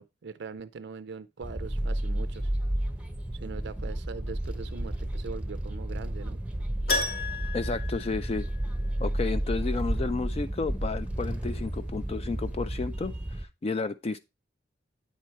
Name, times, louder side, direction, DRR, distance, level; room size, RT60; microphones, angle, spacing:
voice 1, 0.0-2.5 3.4-6.4, right 5 dB, 65° right, 0.4 m, -41 dB
sound 1, 1.4-13.4, right 1 dB, 5° right, 0.8 m, -32 dB
Keyboard (musical), 6.9-8.9 9.2-9.3 12.0-12.1 12.3-12.4, left 3 dB, 55° left, 1.6 m, -33 dB
voice 2, 7.5-8.5 9.0-14.2, left 4 dB, 35° left, 0.4 m, -32 dB
9.0 x 4.5 x 4.5 m
head